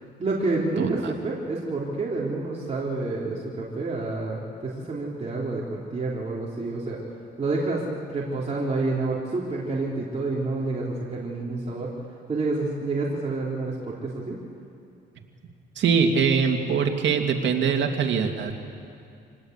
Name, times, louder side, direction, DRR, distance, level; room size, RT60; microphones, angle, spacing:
voice 1, 0.0-7.0 7.4-11.9 12.3-14.4, right 3 dB, 35° right, -4 dB, 3.6 m, -28 dB
voice 2, 0.8-1.1 15.8-18.6, right 6 dB, 65° right, 3 dB, 2.5 m, -23 dB
26.0 x 19.0 x 8.2 m, 2.4 s
cardioid pair, 90°, 20 cm